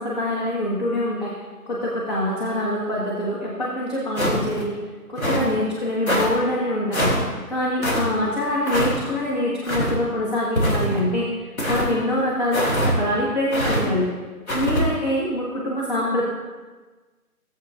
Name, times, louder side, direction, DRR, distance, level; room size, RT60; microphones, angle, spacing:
voice 1, 0.0-1.3 1.7-4.8 5.1-7.1 7.5-11.3 11.7-14.1 14.5-16.2, left 1 dB, 25° left, -6 dB, 1.5 m, -24 dB
sound 1, 4.2-4.6 5.2-5.5 6.1-6.3 6.9-7.2 7.8-8.0 8.7-8.9 9.6-10.0 10.6-11.0 11.6-11.9 12.5-12.9 13.5-13.8 14.5-14.8, equal, 65° left, 2.6 m, -23 dB
17.0 x 7.8 x 2.5 m, 1.3 s
figure-of-eight pair, 160°, 46 cm